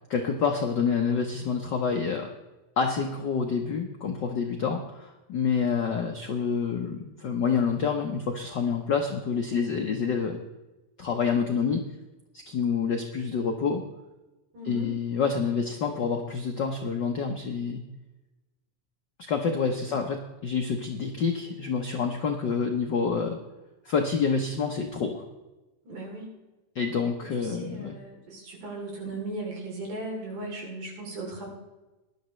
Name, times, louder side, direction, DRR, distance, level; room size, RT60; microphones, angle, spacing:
voice 1, 0.1-2.3 2.8-10.4 11.0-11.8 12.5-13.8 14.6-17.8 19.3-23.4 23.8-25.2 26.7-27.9, left 5 dB, 80° left, 3 dB, 0.9 m, -27 dB
voice 2, 14.5-14.9 19.8-20.0 25.9-26.3 27.4-31.5, right 2 dB, 80° right, -2 dB, 4.8 m, -37 dB
19.0 x 11.5 x 3.2 m, 1.1 s
omnidirectional pair, 3.4 m